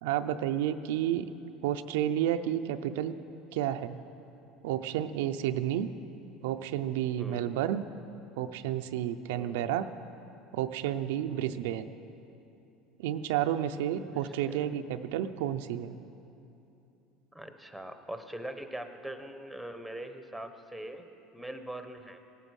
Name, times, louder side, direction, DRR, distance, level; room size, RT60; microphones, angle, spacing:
voice 1, 0.0-1.3 1.6-3.1 3.5-4.0 4.6-5.9 6.4-7.8 8.4-9.9 10.5-11.9 13.0-16.0, right 11 dB, 90° right, 8 dB, 0.5 m, -31 dB
voice 2, 7.2-7.5 9.3-9.7 11.3-11.6 14.1-14.8 17.3-21.1 21.3-22.2, right 1 dB, ahead, 7 dB, 0.9 m, -42 dB
17.5 x 9.1 x 6.3 m, 2.9 s
supercardioid pair, 130°, 0 cm